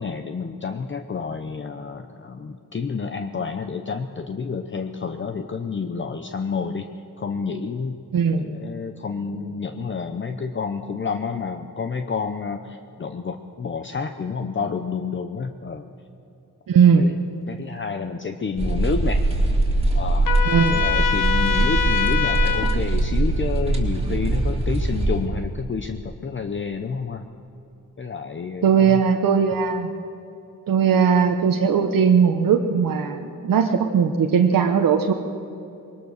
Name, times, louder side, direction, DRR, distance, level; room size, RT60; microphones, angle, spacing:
voice 1, 0.0-6.9 7.2-8.0 8.4-15.9 17.0-17.2 17.5-19.2 19.9-20.3 20.7-27.3 28.0-29.0 29.6-29.8, left 5 dB, 35° left, 7 dB, 0.8 m, -29 dB
voice 2, 16.7-17.1 20.4-20.8 28.6-29.9 30.7-35.1, right 6 dB, 75° right, 4 dB, 1.0 m, -18 dB
sound 1, 18.6-25.3, right 2 dB, 15° right, 3.0 m, -22 dB
Trumpet, 20.2-22.8, left 7 dB, 70° left, 1.5 m, -24 dB
21.0 x 19.0 x 6.5 m, 2.8 s
wide cardioid pair, 105°, 34 cm